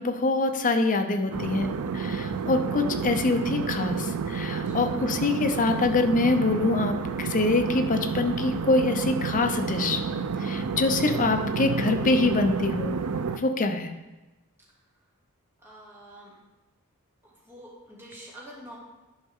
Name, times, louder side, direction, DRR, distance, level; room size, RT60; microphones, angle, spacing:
voice 1, 0.0-10.0 10.4-12.9 13.3-13.9, left 2 dB, 35° left, 6 dB, 0.7 m, -25 dB
sound 1, 1.3-13.4, right 5 dB, 75° right, 0.5 m, -30 dB
voice 2, 4.6-5.0 15.6-16.3 17.2-18.8, equal, 10° right, -7 dB, 2.5 m, -47 dB
10.5 x 5.3 x 3.6 m, 1.1 s
head